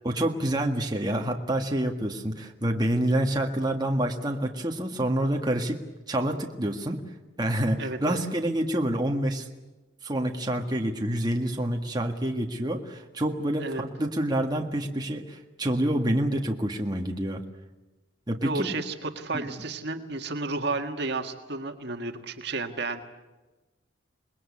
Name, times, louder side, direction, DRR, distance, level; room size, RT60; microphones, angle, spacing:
voice 1, 0.0-5.8 6.1-7.0 7.4-9.5 10.0-17.4 18.3-18.7 19.3-19.6, right 1 dB, 20° right, 2 dB, 1.7 m, -27 dB
voice 2, 7.8-8.2 13.6-13.8 18.4-23.0, right 3 dB, 60° right, 5 dB, 1.8 m, -32 dB
28.0 x 20.5 x 8.6 m, 1.1 s
head